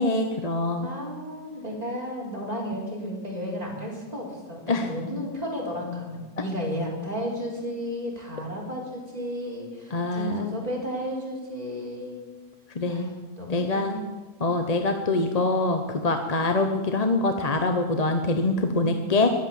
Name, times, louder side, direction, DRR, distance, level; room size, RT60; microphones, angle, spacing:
voice 1, 0.0-0.9 4.7-4.9 9.9-10.5 12.7-13.1 13.5-14.0 14.4-19.3, left 2 dB, 35° left, 6 dB, 0.8 m, -24 dB
voice 2, 0.8-12.2 12.9-14.1 18.8-19.2, equal, 25° right, -3 dB, 3.9 m, -33 dB
14.0 x 11.5 x 7.4 m, 1.3 s
omnidirectional pair, 1.5 m